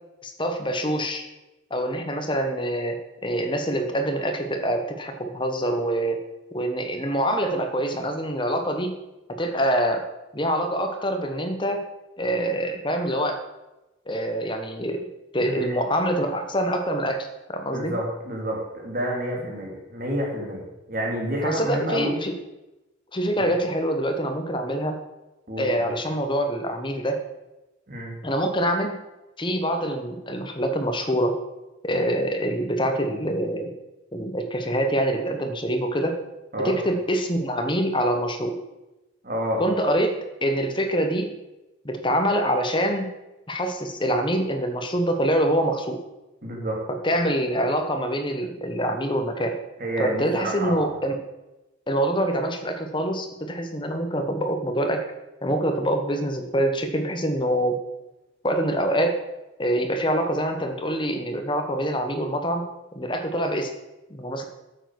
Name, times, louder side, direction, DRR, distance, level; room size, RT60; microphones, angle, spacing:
voice 1, 0.2-1.2 1.7-6.2 6.5-8.9 9.4-10.0 10.3-11.8 12.2-13.4 14.1-15.0 15.3-17.9 21.4-22.3 23.1-25.0 25.6-27.2 28.2-29.0 29.4-31.4 31.8-33.7 34.1-36.2 36.6-38.6 39.6-41.3 41.8-43.1 43.5-46.0 46.9-49.6 50.0-51.2 51.9-55.0 55.4-57.8 58.4-59.2 59.6-62.6 62.9-63.7 64.1-64.4, equal, 25° left, 5 dB, 1.1 m, -25 dB
voice 2, 15.4-15.7 16.2-16.3 17.7-20.6 20.9-22.2 25.5-25.9 27.9-28.1 36.5-36.8 39.2-39.6 46.4-46.8 49.8-50.9, equal, 45° right, -1 dB, 2.5 m, -29 dB
8.8 x 7.2 x 6.3 m, 1.0 s
head